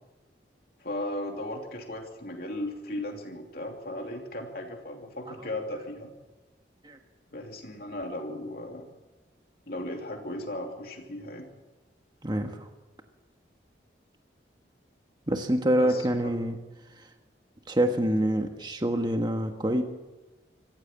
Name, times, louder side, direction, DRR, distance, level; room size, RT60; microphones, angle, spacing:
voice 1, 0.8-6.1 7.3-8.9 9.7-11.5 15.8-16.3, left 1 dB, 55° left, 2 dB, 2.8 m, -36 dB
voice 2, 12.2-12.7 15.3-16.6 17.7-19.8, right 1 dB, 25° right, 4 dB, 1.5 m, -26 dB
26.0 x 15.0 x 7.4 m, 1.1 s
head